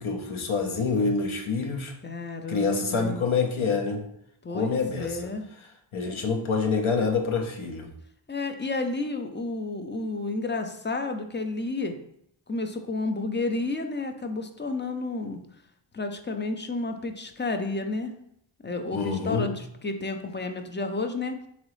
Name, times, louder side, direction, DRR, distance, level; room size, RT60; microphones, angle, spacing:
voice 1, 0.0-1.9 2.5-4.1 4.5-5.3 5.9-7.9 18.9-19.5, left 4 dB, 70° left, 2 dB, 0.8 m, -26 dB
voice 2, 2.0-3.2 4.4-5.4 8.3-12.0 12.5-15.4 15.9-18.1 18.6-21.4, left 3 dB, 25° left, 6 dB, 0.4 m, -31 dB
3.7 x 3.0 x 3.1 m, 0.72 s
cardioid pair, 45°, 50 cm